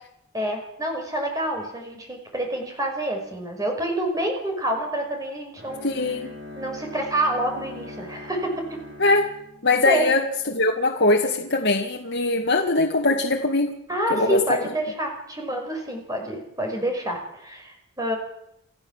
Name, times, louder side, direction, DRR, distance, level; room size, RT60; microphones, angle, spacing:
voice 1, 0.3-5.9 6.5-8.5 9.8-10.1 13.9-18.2, right 1 dB, 15° right, 2 dB, 5.5 m, -27 dB
Bowed string instrument, 5.6-10.5, left 1 dB, 50° right, 6.6 m, -41 dB
voice 2, 5.8-6.3 9.0-9.3 9.6-13.7 14.1-14.4, left 2 dB, 50° left, 0 dB, 2.1 m, -21 dB
29.5 x 14.0 x 7.4 m, 0.77 s
head